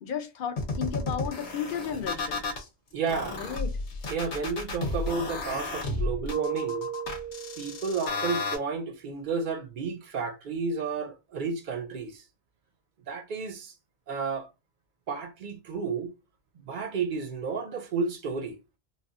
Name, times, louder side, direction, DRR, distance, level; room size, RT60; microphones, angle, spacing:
voice 1, 0.0-2.4 3.4-3.7, left 7 dB, 60° left, 0.6 m, -33 dB
sound 1, 0.6-2.6 3.1-8.6, left 3 dB, 80° left, 1.0 m, -32 dB
voice 2, 2.9-3.4 4.1-6.9 7.6-12.2 13.1-13.7 14.1-14.5 15.1-16.1 16.6-18.6, right 4 dB, 60° right, 0.5 m, -32 dB
Keyboard (musical), 6.3-8.3, right 10 dB, ahead, 0.5 m, -36 dB
3.3 x 2.2 x 2.4 m
omnidirectional pair, 1.2 m